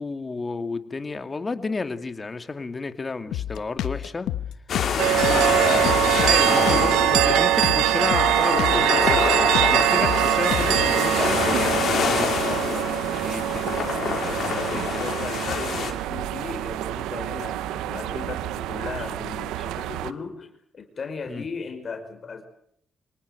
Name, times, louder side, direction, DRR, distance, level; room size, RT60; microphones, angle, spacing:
voice 1, 0.0-4.3 5.0-15.1 21.3-21.4, left 3 dB, 35° left, 9 dB, 2.4 m, -32 dB
Drum kit, 3.3-11.0, left 12 dB, 85° left, 1.0 m, -30 dB
sound 1, 4.7-15.9, left 7 dB, 70° left, 4.7 m, -27 dB
sound 2, 5.0-20.1, right 14 dB, 90° right, 0.9 m, -23 dB
voice 2, 14.7-22.4, left 5 dB, 50° left, 5 dB, 4.9 m, -36 dB
25.5 x 19.0 x 7.9 m, 0.68 s
supercardioid pair, 55°, 0 cm